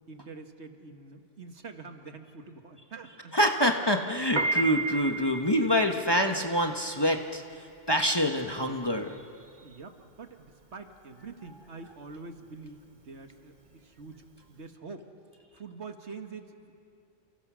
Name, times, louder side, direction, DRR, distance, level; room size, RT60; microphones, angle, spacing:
voice 1, 0.1-3.3 9.6-15.1 15.5-16.8, right 4 dB, 65° right, 5 dB, 1.9 m, -45 dB
voice 2, 3.3-7.4 7.9-9.2, equal, 20° left, 3 dB, 1.2 m, -26 dB
Piano, 4.2-14.6, right 3 dB, 40° right, 1.7 m, -35 dB
29.0 x 28.5 x 6.3 m, 2.5 s
omnidirectional pair, 1.2 m